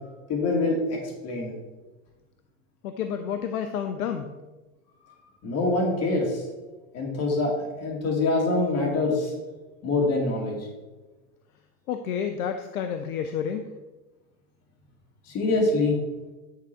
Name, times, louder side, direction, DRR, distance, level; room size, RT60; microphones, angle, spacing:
voice 1, 0.3-1.5 5.1-5.2 5.4-6.4 6.9-9.3 9.8-10.7 15.3-16.0, left 2 dB, 35° left, 0 dB, 2.2 m, -25 dB
voice 2, 2.8-4.3 11.9-13.7, left 8 dB, 80° left, 7 dB, 0.7 m, -30 dB
9.7 x 3.7 x 4.4 m, 1.2 s
hypercardioid pair, 110°, 43 cm